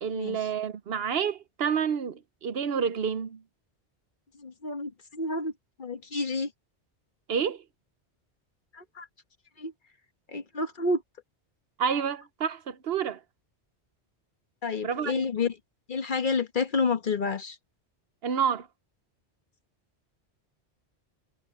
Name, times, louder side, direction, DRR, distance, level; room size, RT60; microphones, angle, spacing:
voice 1, 0.0-3.4 7.3-7.6 11.8-13.2 14.8-15.2 18.2-18.7, right 7 dB, 65° right, 0.9 m, -29 dB
voice 2, 4.4-5.5 5.8-6.5 8.7-9.1 9.6-9.7 10.3-11.0 14.6-15.6 15.9-17.6, left 4 dB, 50° left, 1.3 m, -29 dB
omnidirectional pair, 1.1 m